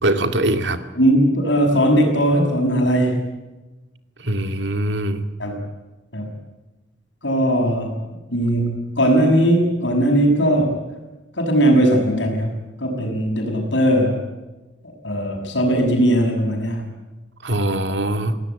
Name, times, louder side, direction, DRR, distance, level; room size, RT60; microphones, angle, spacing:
voice 1, 0.0-0.8 4.2-5.3 17.4-18.4, right 1 dB, 70° right, 7 dB, 2.3 m, -22 dB
voice 2, 0.9-3.3 5.4-5.6 6.1-6.3 7.2-7.9 8.3-10.8 11.3-14.2 14.8-16.9, equal, 70° left, 2 dB, 6.6 m, -19 dB
27.5 x 17.5 x 8.3 m, 1.1 s
head